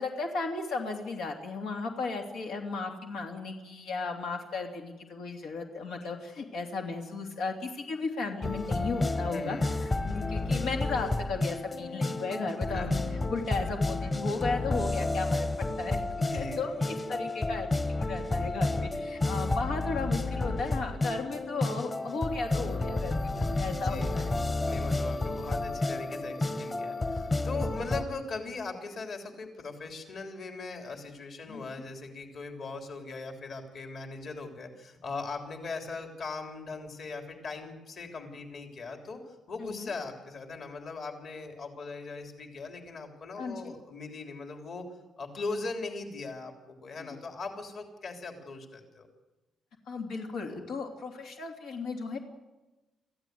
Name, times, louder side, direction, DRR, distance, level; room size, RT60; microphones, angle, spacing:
voice 1, 0.0-9.7 10.0-13.0 13.3-15.5 15.8-16.0 16.3-24.3 31.5-31.6 39.6-39.9 43.4-43.7 47.0-47.1 49.9-52.2, left 4 dB, 85° left, 2 dB, 2.9 m, -35 dB
sound 1, 8.4-28.0, left 2 dB, 25° left, 1.4 m, -31 dB
voice 2, 9.3-9.8 12.7-12.9 16.2-16.9 23.7-44.9 45.2-49.1, left 3 dB, 50° left, 4 dB, 3.4 m, -39 dB
25.5 x 15.0 x 9.5 m, 1.1 s
cardioid pair, 150°, 0 cm